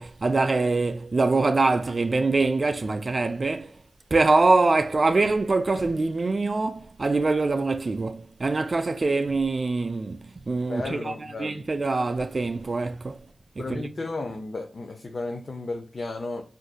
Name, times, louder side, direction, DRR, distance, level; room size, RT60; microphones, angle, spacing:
voice 1, 0.0-3.7 4.1-11.1 11.4-13.2 13.6-13.9, right 3 dB, 50° right, 0.3 m, -24 dB
voice 2, 10.7-11.7 13.6-16.4, left 2 dB, 55° left, 0.5 m, -33 dB
3.6 x 2.5 x 2.2 m
cardioid pair, 65°, 0 cm